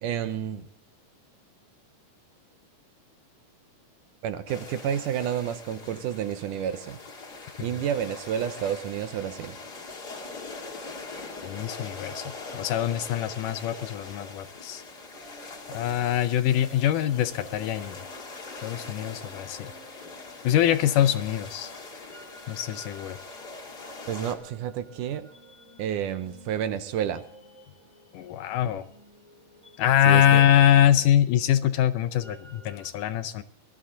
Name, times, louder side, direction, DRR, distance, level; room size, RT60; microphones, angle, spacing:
voice 1, 0.0-0.6 4.2-7.0 7.6-9.6 24.1-25.3 25.8-27.2 30.1-30.4, right 9 dB, 75° right, 11 dB, 2.1 m, -30 dB
sound 1, 4.5-24.3, left 3 dB, 35° left, 2.2 m, -42 dB
voice 2, 11.4-12.2 12.5-14.8 15.7-18.0 18.6-19.7 20.4-21.7 22.5-23.2 28.1-28.9 29.8-33.4, left 11 dB, 75° left, 12 dB, 2.0 m, -23 dB
sound 2, 15.1-32.9, equal, 5° right, 2.0 m, -53 dB
20.0 x 12.5 x 3.8 m, 0.64 s
omnidirectional pair, 4.1 m